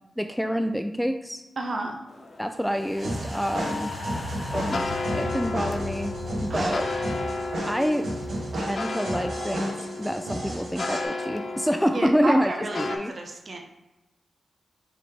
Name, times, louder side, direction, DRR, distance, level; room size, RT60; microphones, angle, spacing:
voice 1, 0.2-1.4 2.4-3.9 4.5-6.1 6.4-6.9 7.6-8.1 8.5-13.1, equal, 5° left, 7 dB, 0.3 m, -27 dB
voice 2, 1.6-2.0 6.5-6.8 11.9-13.6, right 2 dB, 55° right, 2 dB, 0.7 m, -31 dB
sound 1, 2.1-13.0, left 2 dB, 60° left, 0.5 m, -34 dB
sound 2, 2.6-9.0 9.3-9.4, left 2 dB, 20° left, 0.8 m, -37 dB
sound 3, 3.0-11.0, right 1 dB, 75° right, 1.2 m, -33 dB
4.8 x 3.0 x 3.4 m, 1.0 s
cardioid pair, 45°, 0 cm